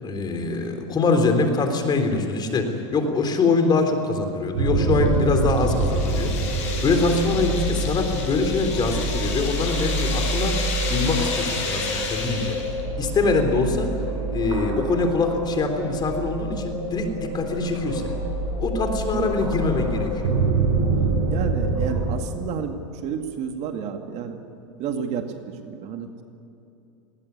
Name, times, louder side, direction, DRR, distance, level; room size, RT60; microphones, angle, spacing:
voice 1, 0.0-10.6 10.9-12.6 13.0-13.9 14.3-18.2 18.6-20.3, left 3 dB, 30° left, 6 dB, 3.7 m, -24 dB
sound 1, 4.5-22.1, right 2 dB, 70° right, 7.8 m, -26 dB
sound 2, 5.0-12.8, left 4 dB, 45° left, 7.7 m, -32 dB
voice 2, 21.3-24.4 24.8-26.2, right 7 dB, 45° right, 5 dB, 2.2 m, -31 dB
20.0 x 19.5 x 9.6 m, 2.7 s
hypercardioid pair, 110°, 15 cm